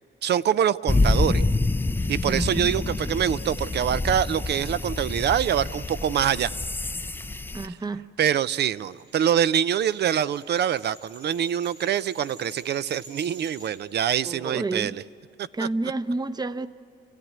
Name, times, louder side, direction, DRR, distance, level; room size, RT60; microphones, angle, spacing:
voice 1, 0.2-1.4 2.1-6.5 7.6-7.7 8.2-15.0 15.4-15.7, right 9 dB, 60° right, 0.6 m, -25 dB
sound 1, 0.9-7.7, left 2 dB, 10° left, 0.5 m, -27 dB
voice 2, 2.2-2.7 7.5-8.1 14.2-15.0 15.5-16.7, right 3 dB, 20° right, 0.8 m, -30 dB
sound 2, 8.4-13.7, right 1 dB, 85° right, 6.7 m, -50 dB
28.0 x 15.0 x 9.4 m
cardioid pair, 90°, 20 cm